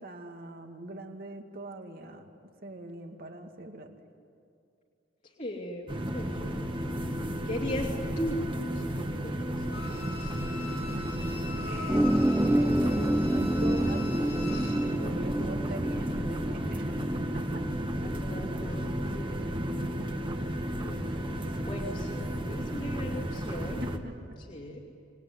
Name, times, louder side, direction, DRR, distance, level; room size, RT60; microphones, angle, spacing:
voice 1, 0.0-4.0 11.5-12.1 12.3-14.3 14.8-17.1 17.3-17.6 23.8-24.1, right 1 dB, 55° right, 4 dB, 2.3 m, -41 dB
voice 2, 5.2-10.7 18.2-20.0 20.8-23.8 24.4-24.8, equal, 45° left, -4 dB, 2.7 m, -39 dB
sound 1, 5.9-24.0, equal, 30° right, 1.6 m, -33 dB
Bowed string instrument, 9.7-14.9 15.2-15.3, left 3 dB, 85° left, 7.3 m, -42 dB
sound 2, 11.9-18.9, right 1 dB, 10° right, 0.7 m, -29 dB
27.5 x 20.0 x 9.7 m, 2.5 s
head